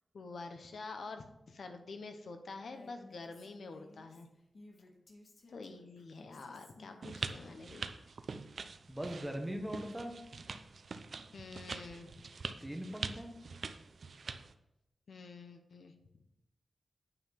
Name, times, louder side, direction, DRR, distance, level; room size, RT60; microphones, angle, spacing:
voice 1, 0.1-4.3 5.5-7.9 11.3-12.1 15.1-15.9, left 3 dB, 70° left, 6 dB, 1.1 m, -47 dB
Female speech woman speaking, 2.6-7.7, left 2 dB, 50° left, 1.8 m, -58 dB
sound 1, 7.0-14.5, right 4 dB, 55° right, 0.6 m, -44 dB
voice 2, 8.9-10.2 12.6-13.3, equal, 5° right, 3 dB, 1.2 m, -40 dB
9.3 x 5.7 x 5.8 m, 0.89 s
wide cardioid pair, 170°, 0 cm